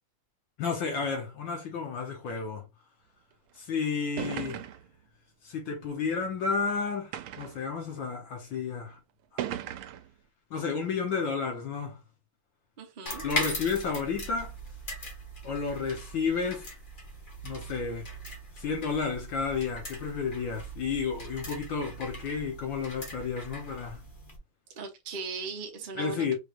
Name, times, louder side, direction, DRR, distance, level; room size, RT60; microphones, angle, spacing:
voice 1, 0.6-2.6 3.6-4.6 5.4-9.0 9.3-9.6 10.5-12.0 13.2-14.5 15.4-16.7 17.4-18.1 18.6-24.0 25.9-26.4, left 5 dB, 65° left, 1.6 m, -31 dB
sound 1, 3.6-3.7 4.2-5.0 5.9-6.0 7.1-7.7 8.5-8.6 9.4-10.1, right 12 dB, 80° right, 1.4 m, -37 dB
voice 2, 12.8-13.3 24.8-26.4, right 4 dB, 45° right, 0.6 m, -38 dB
sound 2, 13.1-24.4, equal, 30° left, 1.0 m, -40 dB
4.7 x 3.2 x 2.4 m
omnidirectional pair, 2.4 m